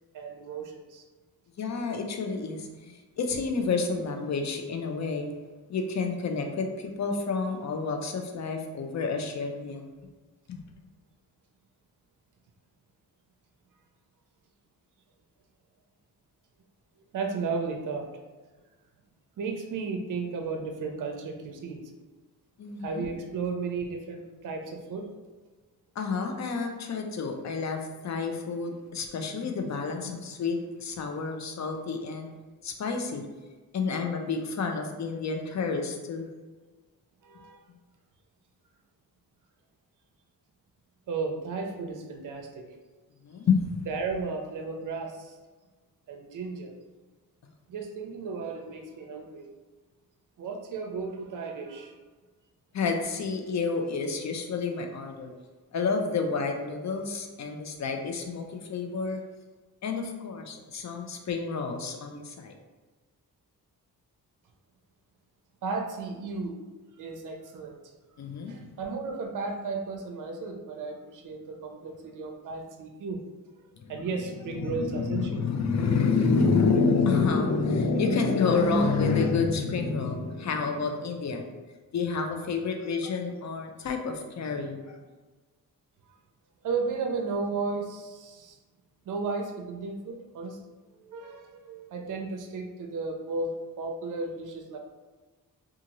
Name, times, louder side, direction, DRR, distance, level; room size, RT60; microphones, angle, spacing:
voice 1, 0.1-1.0 17.1-18.1 19.4-21.8 22.8-25.1 37.2-37.6 41.1-42.7 43.9-45.4 46.1-46.7 47.7-49.5 50.4-51.9 65.6-67.8 68.5-73.2 73.9-75.4 86.6-88.6 89.1-90.6 90.9-94.8, right 4 dB, 60° right, 3 dB, 0.5 m, -34 dB
voice 2, 1.6-5.3 5.7-9.9 10.5-10.6 22.6-23.1 26.0-32.3 32.6-33.2 33.7-36.3 43.2-43.8 52.7-55.3 55.7-59.2 59.8-62.5 68.2-68.7 74.6-81.6 81.9-85.0, left 4 dB, 50° left, 4 dB, 0.5 m, -29 dB
2.6 x 2.4 x 2.9 m, 1.3 s
cardioid pair, 70°, 36 cm